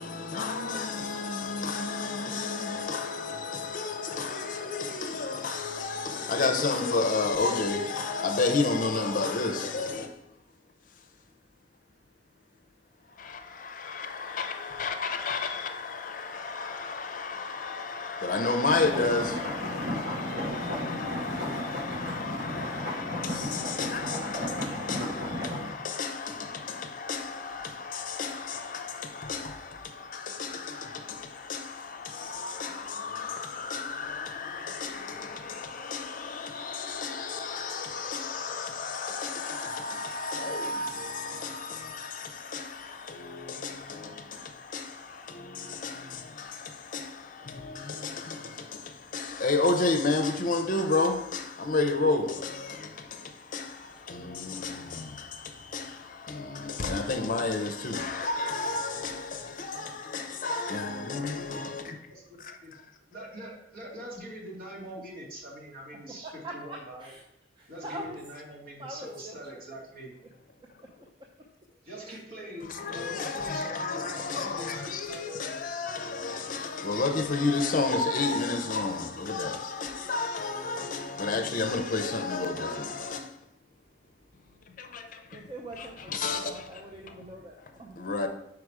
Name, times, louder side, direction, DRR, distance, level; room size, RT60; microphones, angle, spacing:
voice 1, 0.0-10.2 13.1-62.0 62.4-62.6 72.6-83.4 84.8-85.4 85.8-86.7 87.1-87.2 88.0-88.3, left 3 dB, 50° left, 0.6 m, -32 dB
sound 1, 18.7-25.7, equal, 80° right, 2.3 m, -34 dB
voice 2, 63.1-66.3 66.5-67.1 67.7-70.1 71.8-75.8, equal, 55° right, 2.0 m, -43 dB
voice 3, 66.2-67.2 67.6-68.2 68.8-69.4 70.6-70.7 71.2-71.3 72.0-72.2 85.3-86.1 86.4-88.0, right 1 dB, 30° right, 0.6 m, -43 dB
4.9 x 4.8 x 4.7 m
head